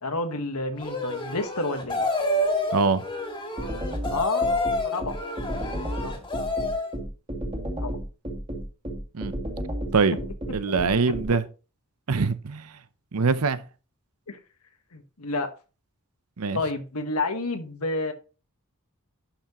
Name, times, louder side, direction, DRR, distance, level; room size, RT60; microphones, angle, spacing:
voice 1, 0.0-2.0 4.1-4.5 4.8-5.2 6.0-6.2 7.8-8.0 11.1-11.2 14.3-14.4 14.9-15.5 16.5-18.1, left 3 dB, 90° left, 1.5 m, -29 dB
sound 1, 0.8-6.9, left 1 dB, 20° left, 2.0 m, -28 dB
voice 2, 2.7-3.0 9.1-9.4 9.9-10.2 10.5-11.4 12.1-12.7 13.1-13.6 16.4-16.6, right 4 dB, 85° right, 0.7 m, -23 dB
sound 2, 3.6-11.3, right 1 dB, 30° right, 2.5 m, -32 dB
11.5 x 5.8 x 3.0 m
head